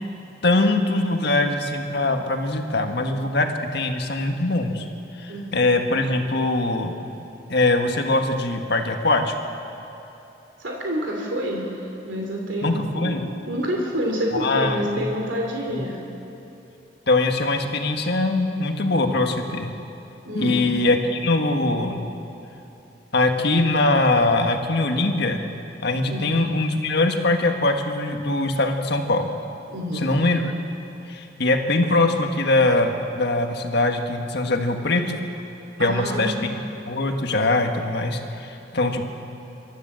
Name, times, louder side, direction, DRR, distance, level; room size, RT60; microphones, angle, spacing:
voice 1, 0.4-4.8 5.2-7.0 7.5-9.3 12.6-13.3 14.3-15.1 15.7-15.8 17.1-19.7 20.3-22.0 23.1-25.4 25.8-29.3 29.9-30.4 31.1-35.2 35.8-36.5 36.9-39.0, left 2 dB, 65° left, 4 dB, 1.6 m, -22 dB
voice 2, 10.6-13.1 13.5-16.0 20.3-20.7 26.1-26.3 29.7-30.1 35.8-36.4, equal, 80° right, 0 dB, 2.7 m, -28 dB
25.5 x 13.0 x 7.7 m, 2.9 s
head